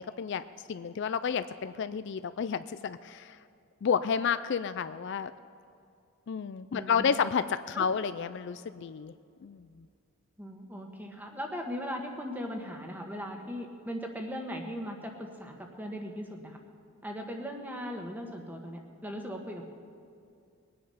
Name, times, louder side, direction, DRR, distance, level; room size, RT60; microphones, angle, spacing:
voice 1, 0.0-3.4 3.8-5.3 6.3-9.1 9.4-9.9, left 6 dB, 50° left, 13 dB, 0.3 m, -31 dB
voice 2, 6.7-7.2 7.7-7.9 10.4-16.6 17.0-19.6, equal, 10° right, 2 dB, 1.3 m, -38 dB
21.5 x 9.4 x 5.6 m, 2.4 s
head